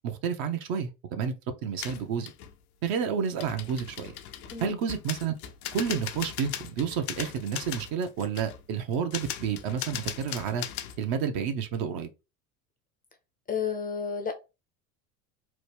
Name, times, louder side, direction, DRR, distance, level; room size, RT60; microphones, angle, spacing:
voice 1, 0.0-1.3 1.6-2.3 2.8-4.2 4.6-5.3 5.7-10.7 11.0-12.1, right 7 dB, 55° right, 0.7 m, -30 dB
sound 1, 1.8-2.6 3.4-11.0, left 10 dB, 85° left, 0.6 m, -39 dB
voice 2, 13.5-14.3, left 6 dB, 20° left, 0.4 m, -31 dB
3.0 x 2.1 x 3.3 m
hypercardioid pair, 85°, 43 cm